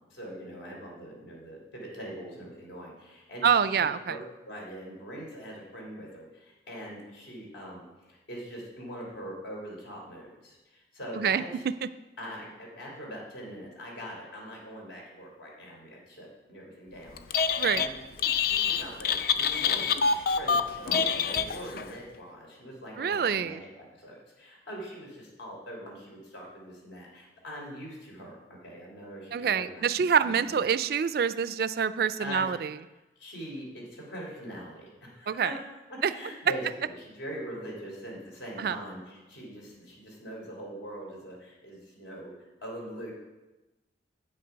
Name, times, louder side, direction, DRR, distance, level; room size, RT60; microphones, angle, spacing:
voice 1, 0.1-11.6 12.2-17.9 18.3-19.9 20.4-30.7 32.2-32.5 33.1-35.6 35.9-42.3 42.6-43.1, equal, 80° left, -2 dB, 3.3 m, -42 dB
voice 2, 3.4-4.2 11.2-11.9 17.6-17.9 23.0-23.6 29.3-32.8 35.3-35.5 36.0-36.1 38.6-38.8, right 7 dB, 55° right, 14 dB, 0.3 m, -26 dB
Telephone, 17.2-17.9 18.2-21.9, left 6 dB, 50° left, 0.4 m, -26 dB
9.0 x 6.6 x 5.6 m, 1.1 s
head